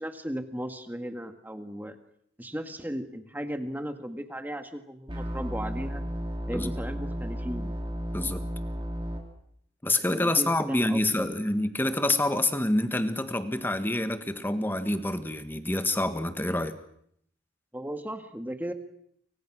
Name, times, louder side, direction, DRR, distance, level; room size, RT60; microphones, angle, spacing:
voice 1, 0.0-2.0 2.4-6.0 6.5-7.8 10.1-11.7 17.7-18.7, equal, 10° right, 7 dB, 1.8 m, -36 dB
sound 1, 5.1-9.2, equal, 25° right, 4.3 m, -33 dB
voice 2, 9.8-16.7, left 1 dB, 10° left, 9 dB, 1.6 m, -27 dB
29.5 x 25.0 x 6.3 m, 0.70 s
head